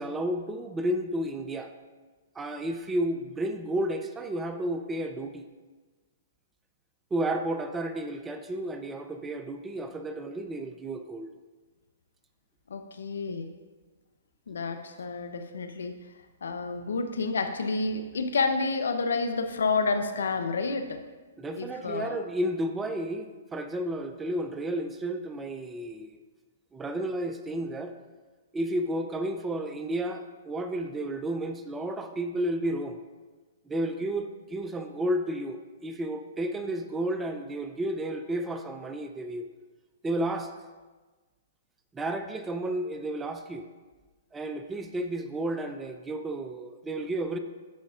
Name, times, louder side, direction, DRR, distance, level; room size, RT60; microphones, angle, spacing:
voice 1, 0.0-1.7 2.4-5.5 7.1-11.3 21.4-26.2 26.7-27.9 28.5-33.0 33.7-39.5 40.0-40.5 41.9-43.7 44.3-47.4, right 1 dB, 10° right, 7 dB, 0.4 m, -32 dB
voice 2, 12.7-13.5 14.5-16.0 16.4-21.0 21.6-22.2, left 4 dB, 80° left, 7 dB, 0.7 m, -29 dB
11.5 x 5.2 x 2.5 m, 1.3 s
hypercardioid pair, 135°, 0 cm